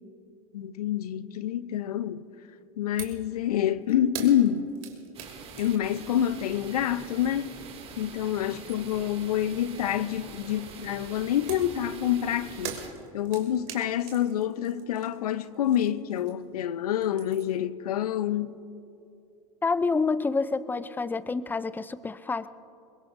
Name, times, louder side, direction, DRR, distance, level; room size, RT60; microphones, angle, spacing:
voice 1, 0.5-2.2 2.8-4.7 5.6-7.5 8.0-12.8 13.1-18.6, left 11 dB, 85° left, 0.6 m, -27 dB
sound 1, 3.0-3.3 3.5-8.0 8.4-9.1 11.5-16.6 16.9-17.6, right 9 dB, 60° right, 2.6 m, -44 dB
sound 2, 5.1-12.9, right 5 dB, 30° right, 2.3 m, -45 dB
voice 2, 19.6-22.5, left 4 dB, 10° left, 0.4 m, -28 dB
23.0 x 21.5 x 2.6 m
hypercardioid pair, 100°, 19 cm